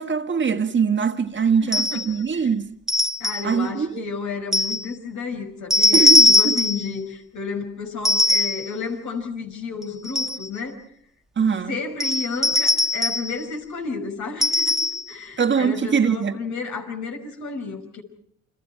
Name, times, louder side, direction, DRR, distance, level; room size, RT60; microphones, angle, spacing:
voice 1, 0.0-2.7 3.4-4.0 5.9-6.6 11.4-11.8 15.4-16.4, right 6 dB, 40° right, 1.6 m, -22 dB
voice 2, 1.6-2.0 2.3-2.5 3.2-10.8 11.7-18.0, left 5 dB, 75° left, 5.6 m, -32 dB
sound 1, 1.7-2.1 2.9-3.5 4.5-4.9 5.7-6.9 8.0-8.7 9.8-10.5 12.0-13.3 14.4-15.1, left 2 dB, ahead, 1.3 m, -19 dB
30.0 x 25.5 x 4.7 m
cardioid pair, 90°, 30 cm